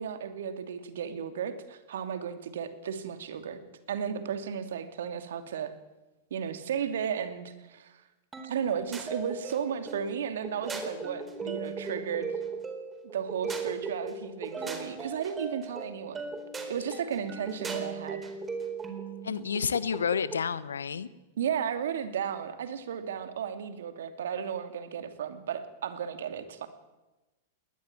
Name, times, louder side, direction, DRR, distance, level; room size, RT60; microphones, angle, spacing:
voice 1, 0.0-3.6 3.9-5.7 6.3-8.0 8.4-12.3 13.1-16.2 16.7-18.3 21.4-26.7, right 8 dB, 65° right, 8 dB, 2.7 m, -34 dB
sound 1, 8.3-20.5, right 4 dB, 15° right, 4.2 m, -38 dB
voice 2, 19.2-21.1, left 6 dB, 80° left, 17 dB, 1.2 m, -30 dB
20.5 x 19.5 x 9.1 m, 1.1 s
figure-of-eight pair, 100°, 0 cm